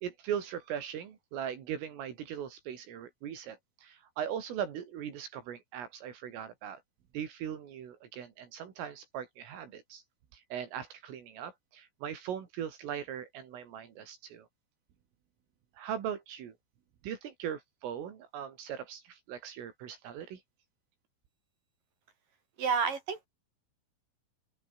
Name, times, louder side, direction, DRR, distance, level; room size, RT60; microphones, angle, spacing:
voice 1, 0.0-6.8 7.1-10.0 10.3-14.5 15.8-16.6 17.0-20.4, right 9 dB, 75° right, 5.7 m, -39 dB
voice 2, 22.6-23.3, right 6 dB, 45° right, 4.3 m, -30 dB
open air
omnidirectional pair, 5.8 m